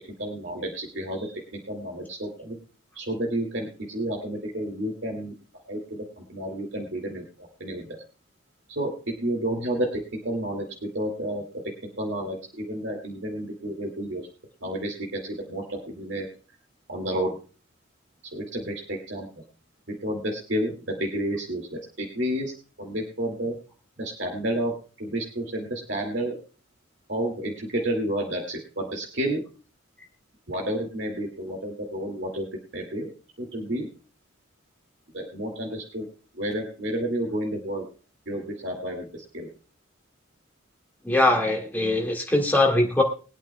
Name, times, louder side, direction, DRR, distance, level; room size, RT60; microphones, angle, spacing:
voice 1, 0.2-2.6 2.9-5.3 5.7-5.8 6.2-8.0 8.8-11.4 12.0-14.2 14.6-16.3 16.9-17.4 18.3-19.3 19.9-22.5 22.8-23.5 24.0-24.7 25.0-26.4 27.1-29.4 30.5-33.1 33.4-33.9 35.1-36.0 36.3-37.9 38.3-39.5, right 1 dB, 60° right, 0 dB, 2.4 m, -30 dB
voice 2, 41.1-43.0, left 2 dB, 10° left, 0 dB, 1.9 m, -21 dB
22.5 x 8.8 x 2.3 m, 0.35 s
head